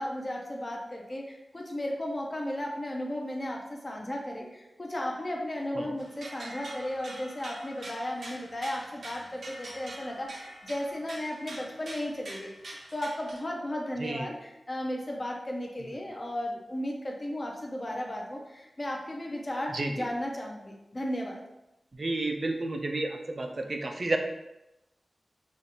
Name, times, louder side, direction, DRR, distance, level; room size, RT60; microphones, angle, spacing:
voice 1, 0.0-21.4, left 1 dB, 30° left, -1 dB, 0.6 m, -35 dB
sound 1, 6.0-13.4, right 1 dB, 75° right, 0.8 m, -45 dB
voice 2, 14.0-14.3 19.7-20.1 21.9-24.2, right 2 dB, 45° right, 4 dB, 0.5 m, -31 dB
4.9 x 2.4 x 2.8 m, 0.91 s
wide cardioid pair, 95°, 0 cm